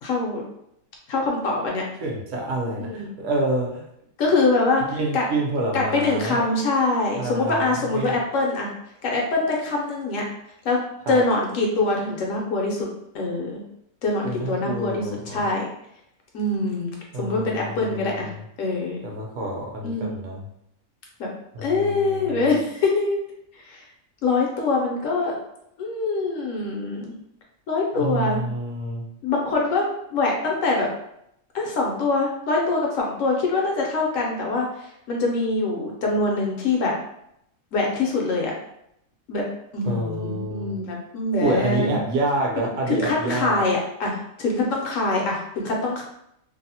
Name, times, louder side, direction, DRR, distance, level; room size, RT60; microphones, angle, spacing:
voice 1, 0.0-0.4 1.1-1.8 2.8-3.1 4.2-5.2 5.7-8.7 9.0-10.2 10.6-10.8 11.1-12.9 13.1-13.6 14.0-15.7 16.3-18.3 18.6-19.0 19.8-20.3 21.2-21.3 21.6-23.2 23.6-23.8 24.2-25.4 25.8-27.1 27.7-28.4 29.2-30.9 31.5-36.9 37.7-38.5 39.3-39.4 39.7-42.0 42.9-46.0, left 3 dB, 75° left, -1 dB, 0.9 m, -24 dB
voice 2, 2.0-3.8 4.9-6.4 7.2-8.1 11.1-11.2 14.2-15.4 17.1-18.4 19.0-20.4 21.5-22.4 27.9-29.1 39.9-40.8 41.4-43.6, right 2 dB, 65° right, -1 dB, 0.9 m, -28 dB
2.6 x 2.0 x 2.7 m, 0.77 s
omnidirectional pair, 1.5 m